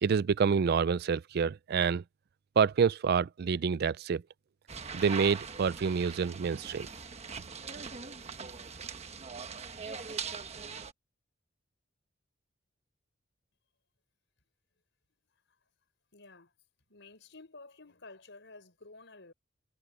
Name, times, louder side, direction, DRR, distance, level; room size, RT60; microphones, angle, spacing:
voice 1, 0.0-2.0 2.6-4.2 4.9-6.9, right 6 dB, 55° right, 0.4 m, -27 dB
sound 1, 4.7-10.9, right 5 dB, 35° right, 1.2 m, -41 dB
voice 2, 16.1-16.5 16.9-19.3, left 3 dB, 65° left, 6.5 m, -52 dB
head